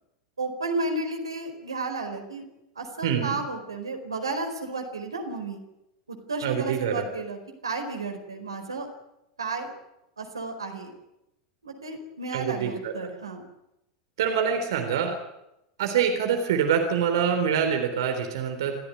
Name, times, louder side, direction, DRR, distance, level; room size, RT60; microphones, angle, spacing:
voice 1, 0.4-2.4 2.7-5.6 6.1-8.9 9.4-9.7 10.2-10.9 11.6-13.4, right 3 dB, 80° right, 5 dB, 4.5 m, -32 dB
voice 2, 3.0-3.4 6.4-7.1 12.3-12.9 14.2-15.1 15.8-18.8, right 7 dB, 60° right, 5 dB, 3.7 m, -25 dB
28.0 x 15.5 x 9.6 m, 0.87 s
figure-of-eight pair, 85°, 2 cm